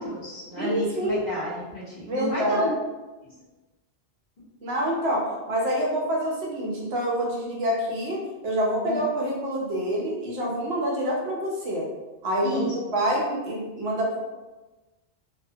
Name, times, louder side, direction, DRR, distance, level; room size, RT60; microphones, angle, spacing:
voice 1, 0.0-2.7 8.8-9.0 12.4-12.7, left 1 dB, 45° left, -8 dB, 1.0 m, -31 dB
voice 2, 0.6-1.3 2.1-2.7 4.6-11.9 12.2-12.6 12.9-14.2, equal, 75° right, -2 dB, 0.9 m, -26 dB
2.7 x 2.1 x 2.7 m, 1.2 s
omnidirectional pair, 1.1 m